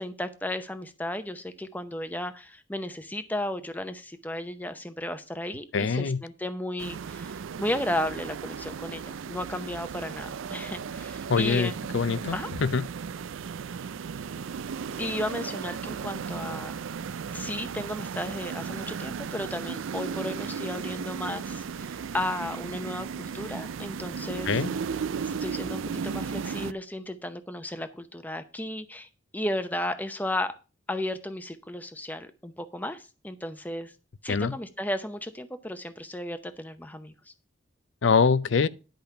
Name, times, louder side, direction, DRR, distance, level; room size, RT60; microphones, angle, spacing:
voice 1, 0.0-11.7 12.3-12.5 15.0-16.8 17.3-24.5 25.2-30.5 30.9-33.9 34.2-37.3, left 1 dB, 10° left, 0.7 m, -34 dB
voice 2, 5.7-6.2 11.3-12.8 24.5-24.7 34.3-34.5 38.0-38.7, left 5 dB, 75° left, 0.5 m, -24 dB
sound 1, 6.8-26.7, right 6 dB, 90° right, 0.4 m, -35 dB
10.5 x 5.2 x 5.7 m
head